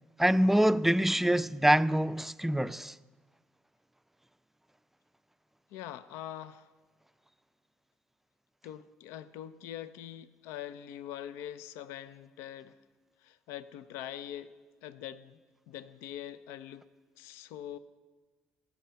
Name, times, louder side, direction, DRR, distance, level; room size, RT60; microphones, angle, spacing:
voice 1, 0.2-2.9, right 1 dB, 5° right, 0.4 m, -25 dB
voice 2, 5.7-6.7 8.6-12.8 13.2-14.5 14.8-15.4 15.7-16.9 17.2-17.8, left 11 dB, 80° left, 0.5 m, -43 dB
16.5 x 5.9 x 8.6 m
hypercardioid pair, 55°, 4 cm